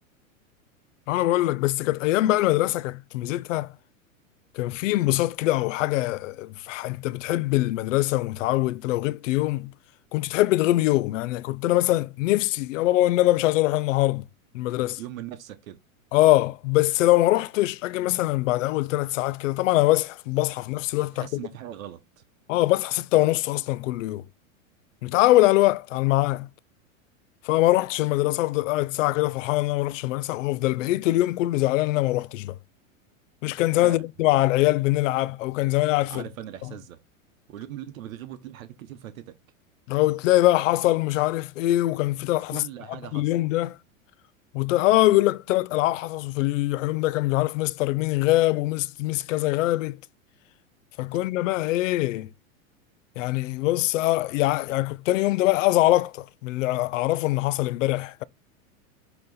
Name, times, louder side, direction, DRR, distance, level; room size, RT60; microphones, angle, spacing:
voice 1, 1.1-3.7 4.5-9.7 10.1-14.2 14.5-15.0 16.1-21.4 22.5-24.2 25.0-26.5 27.4-32.6 33.4-36.2 39.9-42.6 43.1-43.8 44.5-50.0 51.0-52.3 53.2-58.2, left 17 dB, 65° left, 0.6 m, -23 dB
voice 2, 15.0-15.8 21.1-22.2 33.8-34.0 36.1-37.0 37.5-39.4 42.5-43.3, right 11 dB, 75° right, 1.1 m, -40 dB
7.9 x 3.1 x 3.9 m
hypercardioid pair, 125°, 41 cm